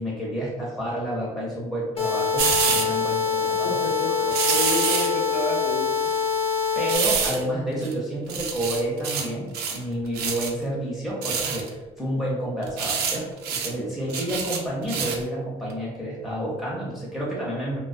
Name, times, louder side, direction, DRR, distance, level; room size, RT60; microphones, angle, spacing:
voice 1, 0.0-3.8 6.8-17.8, equal, ahead, -6 dB, 0.6 m, -30 dB
sound 1, 2.0-7.0, left 6 dB, 35° left, 0.7 m, -25 dB
sound 2, 2.4-2.9 4.3-5.1 6.9-7.4 7.8-7.9 8.3-9.3 9.5-9.8 10.1-10.5 11.2-11.7 12.6-13.2 13.4-13.7 14.1-15.2 15.7-15.8, right 6 dB, 70° right, 0.4 m, -26 dB
voice 2, 3.8-6.1, left 2 dB, 85° left, -1 dB, 0.6 m, -30 dB
2.3 x 2.2 x 2.4 m, 1.2 s
cardioid pair, 110°, 17 cm